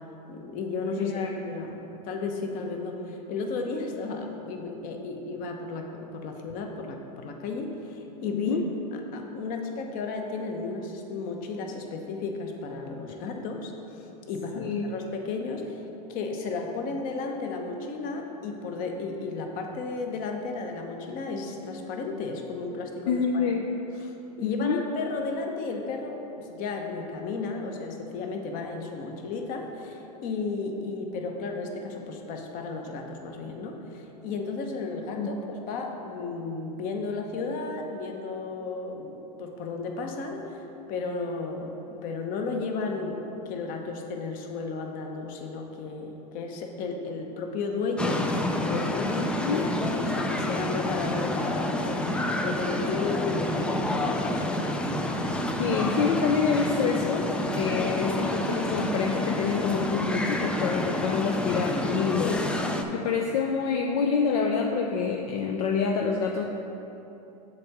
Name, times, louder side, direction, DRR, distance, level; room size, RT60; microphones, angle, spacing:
voice 1, 0.3-8.6 9.1-15.8 16.1-23.5 24.0-24.1 24.4-40.6 40.9-54.5 62.2-62.5, left 3 dB, 40° left, 3 dB, 1.0 m, -34 dB
voice 2, 1.0-1.3 8.3-8.6 14.6-14.8 23.1-23.7 24.4-24.8 35.2-35.3 49.4-49.6 55.6-57.3 57.6-62.2 62.9-66.4, left 5 dB, 60° left, 2 dB, 0.6 m, -27 dB
sound 1, 48.0-62.8, left 1 dB, 5° left, 0.3 m, -28 dB
7.6 x 3.6 x 6.5 m, 3.0 s
hypercardioid pair, 125°, 21 cm